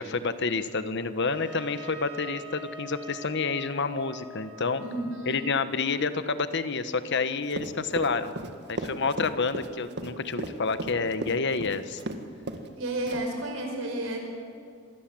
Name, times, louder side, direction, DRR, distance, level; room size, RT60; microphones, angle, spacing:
voice 1, 0.0-4.8 5.2-8.3 8.7-12.0, left 4 dB, 60° left, 11 dB, 1.2 m, -29 dB
Trumpet, 1.2-6.0, equal, 25° right, 6.6 m, -45 dB
voice 2, 4.8-5.4 12.8-14.2, right 1 dB, 75° right, 2 dB, 5.7 m, -32 dB
Run, 7.5-12.2 12.5-12.7 13.1-13.4, right 2 dB, 55° right, 1.7 m, -35 dB
26.5 x 19.0 x 7.7 m, 2.4 s
head